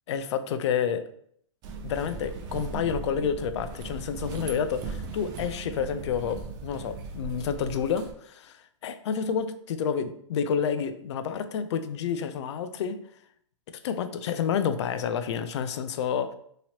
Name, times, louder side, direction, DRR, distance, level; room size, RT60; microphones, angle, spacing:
voice 1, 0.1-1.1 1.8-13.0 13.8-16.3, left 7 dB, 60° left, 10 dB, 0.4 m, -29 dB
sound 1, 1.6-8.1, right 4 dB, 25° right, 0.4 m, -38 dB
2.9 x 2.8 x 2.8 m, 0.66 s
hypercardioid pair, 135°, 17 cm